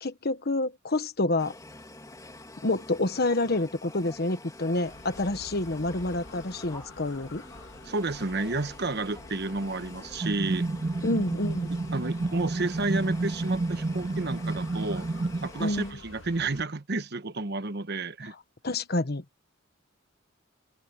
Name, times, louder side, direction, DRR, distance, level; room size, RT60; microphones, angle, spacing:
voice 1, 0.0-1.5 2.6-7.4 11.0-11.7 15.6-15.9 18.6-19.2, left 2 dB, 55° left, 1.3 m, -28 dB
sound 1, 1.4-15.9, left 2 dB, 20° left, 3.1 m, -47 dB
sound 2, 4.8-16.6, left 2 dB, 75° left, 2.3 m, -49 dB
voice 2, 7.8-10.7 11.9-15.1 15.4-18.3, right 3 dB, 55° right, 1.2 m, -31 dB
sound 3, 10.2-15.5, right 2 dB, 25° right, 0.4 m, -30 dB
head